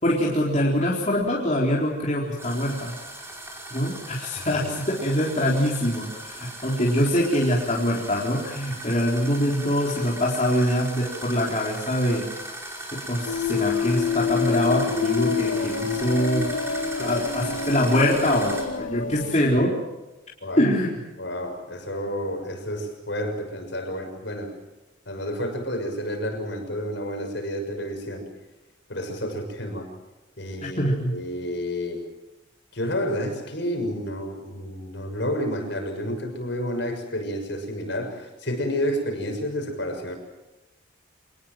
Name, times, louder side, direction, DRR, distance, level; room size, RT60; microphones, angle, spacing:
voice 1, 0.0-2.9 3.7-12.2 12.9-16.5 17.0-19.7 20.6-21.0 30.8-31.1, equal, 35° left, -4 dB, 4.2 m, -24 dB
sound 1, 2.4-18.6, right 1 dB, 15° right, 5.3 m, -38 dB
sound 2, 13.3-19.4, left 6 dB, 80° left, 2.7 m, -27 dB
voice 2, 21.2-24.5 25.1-28.3 28.9-29.9 30.4-32.0 32.7-40.1, equal, 60° left, 4 dB, 6.4 m, -30 dB
27.5 x 20.0 x 7.7 m, 1.0 s
head